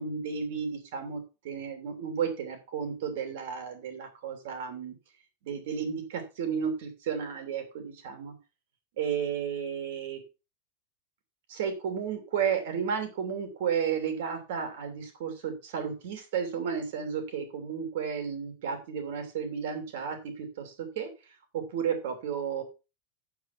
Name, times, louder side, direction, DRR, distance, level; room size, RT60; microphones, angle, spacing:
voice 1, 0.0-4.9 5.4-7.6 8.0-8.3 9.0-10.2 11.5-22.6, right 7 dB, 60° right, 6 dB, 3.0 m, -33 dB
9.3 x 6.9 x 5.9 m, 0.29 s
supercardioid pair, 180°, 0 cm